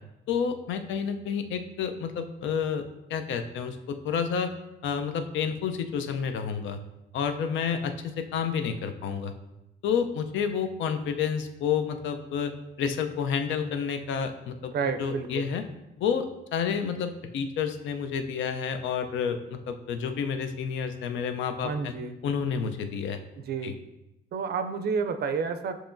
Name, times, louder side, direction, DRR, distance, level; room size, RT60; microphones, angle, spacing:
voice 1, 0.3-4.5 4.8-6.8 7.1-9.3 9.8-12.5 12.8-15.6 16.0-21.9 22.2-23.2 23.6-23.7, left 7 dB, 75° left, 8 dB, 0.4 m, -30 dB
voice 2, 14.7-15.5 21.6-22.1 23.5-23.7 24.3-25.7, right 5 dB, 55° right, 9 dB, 0.4 m, -30 dB
6.7 x 3.0 x 2.5 m, 0.92 s
cardioid pair, 90°, 20 cm